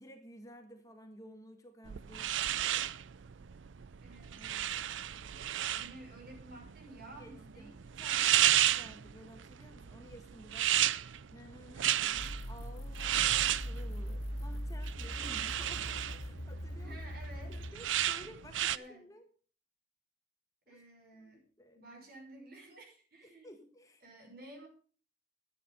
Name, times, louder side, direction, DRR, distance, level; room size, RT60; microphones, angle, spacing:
voice 1, 0.0-2.3 7.2-11.0 11.3-12.1 12.5-17.0 17.2-19.2 20.7-20.8 21.2-21.8 23.2-24.0, equal, 20° left, 4 dB, 1.5 m, -54 dB
sound 1, 1.9-18.8, right 12 dB, 80° right, 0.5 m, -33 dB
voice 2, 4.0-4.8 5.6-7.8 11.9-12.4 16.8-17.6 18.6-19.1 20.7-21.4 21.7-23.6 24.0-24.7, right 1 dB, 55° right, 2 dB, 5.7 m, -53 dB
sound 2, 12.2-17.7, equal, 75° left, 2.9 m, -41 dB
13.0 x 10.0 x 5.5 m, 0.42 s
head